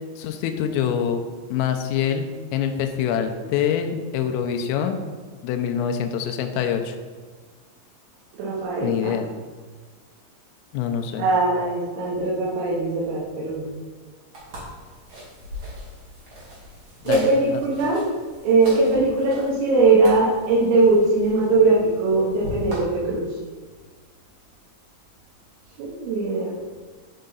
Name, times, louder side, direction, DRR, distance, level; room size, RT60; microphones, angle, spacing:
voice 1, 0.2-1.2 1.5-5.0 5.4-7.0 8.8-9.3 10.7-11.3 17.0-17.6, left 8 dB, 90° left, 6 dB, 3.2 m, -25 dB
voice 2, 8.4-9.1 11.2-13.7 17.1-18.0 18.4-23.2 25.8-26.5, right 3 dB, 85° right, -6 dB, 3.9 m, -20 dB
sound 1, 14.3-22.8, equal, 45° right, 1.6 m, -38 dB
9.7 x 5.6 x 3.9 m, 1.5 s
omnidirectional pair, 5.8 m